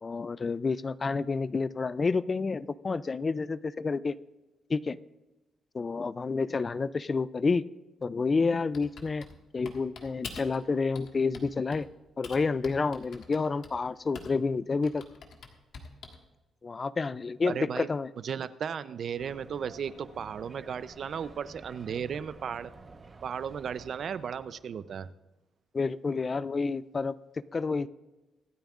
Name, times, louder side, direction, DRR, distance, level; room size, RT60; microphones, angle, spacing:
voice 1, 0.0-4.2 4.7-5.0 5.7-7.6 8.0-9.3 9.5-11.9 12.2-15.0 16.6-18.1 25.7-27.1 27.5-27.9, left 4 dB, 30° left, 17 dB, 0.3 m, -29 dB
Typing, 8.7-10.6 11.0-11.9 12.2-14.5 14.8-16.3, left 5 dB, 70° left, 1.6 m, -46 dB
voice 2, 17.5-17.9 18.2-22.7 23.2-25.1, right 7 dB, 55° right, 14 dB, 0.5 m, -35 dB
sound 1, 19.2-24.9, right 3 dB, 30° right, 1.0 m, -51 dB
25.0 x 9.0 x 2.4 m, 1.1 s
cardioid pair, 120°, 0 cm